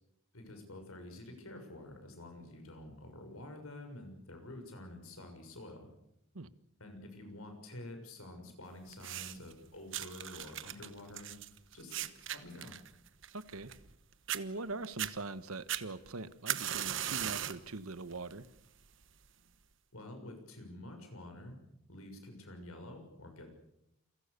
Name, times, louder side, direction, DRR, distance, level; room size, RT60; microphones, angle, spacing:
voice 1, 0.3-5.9 6.8-11.3 11.7-12.8 19.9-21.6 21.9-23.5, left 1 dB, 85° left, 5 dB, 6.8 m, -49 dB
sound 1, 8.9-9.5 9.9-14.0 14.3-14.4 14.8-15.1 15.7-17.7 18.1-18.5 19.2-19.3, right 11 dB, 60° right, 1.2 m, -38 dB
voice 2, 13.3-13.7 14.3-18.5, right 3 dB, 90° right, 14 dB, 1.4 m, -42 dB
29.0 x 23.5 x 6.9 m, 0.81 s
head